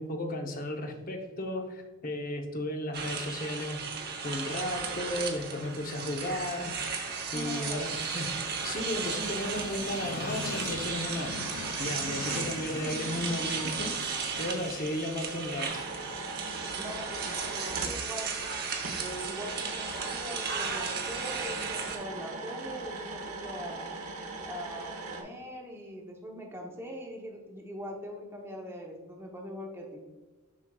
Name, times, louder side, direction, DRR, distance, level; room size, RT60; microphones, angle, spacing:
voice 1, 0.0-6.8 7.3-8.4 8.6-14.0 14.4-15.9, left 1 dB, 40° left, 3 dB, 0.8 m, -34 dB
sound 1, 2.9-22.0, right 5 dB, 45° right, 0.8 m, -35 dB
Train, 4.5-20.6, left 5 dB, 85° left, 0.5 m, -45 dB
voice 2, 7.3-7.9 16.8-18.3 19.0-23.7 24.5-30.0, equal, 10° right, 0 dB, 0.7 m, -42 dB
sound 2, 15.6-18.0 18.8-25.2, right 3 dB, 80° right, 1.0 m, -40 dB
7.2 x 6.2 x 2.3 m, 1.2 s
head